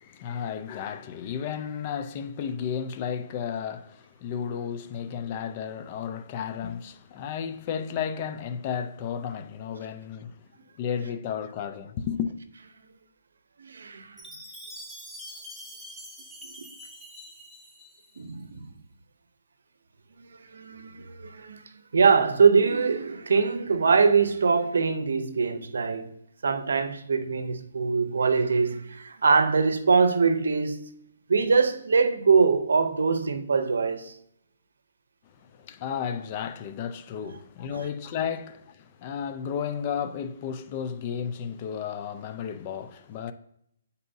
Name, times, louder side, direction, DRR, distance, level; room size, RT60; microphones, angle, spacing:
voice 1, 0.0-10.5 10.8-12.3 35.3-43.3, left 7 dB, 30° left, 0.5 m, -33 dB
voice 2, 13.6-14.1 18.2-18.7 20.5-21.6 21.9-26.1 26.4-30.8 31.3-34.1 37.7-37.8, right 5 dB, 80° right, 0.6 m, -23 dB
Chime, 14.2-18.3, equal, ahead, 0.8 m, -44 dB
8.9 x 4.0 x 2.7 m
hypercardioid pair, 155°, 0 cm